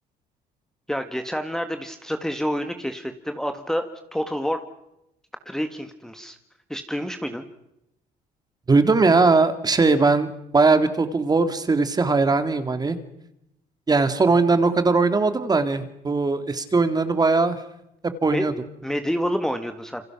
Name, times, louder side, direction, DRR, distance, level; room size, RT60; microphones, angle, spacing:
voice 1, 0.9-4.6 5.5-6.4 6.7-7.4 18.3-18.5 18.8-20.0, equal, 5° left, 7 dB, 1.8 m, -28 dB
voice 2, 8.7-13.0 13.9-17.6 18.2-18.5, right 3 dB, 25° right, 10 dB, 2.3 m, -20 dB
28.0 x 26.0 x 6.0 m, 0.84 s
cardioid pair, 110°, 17 cm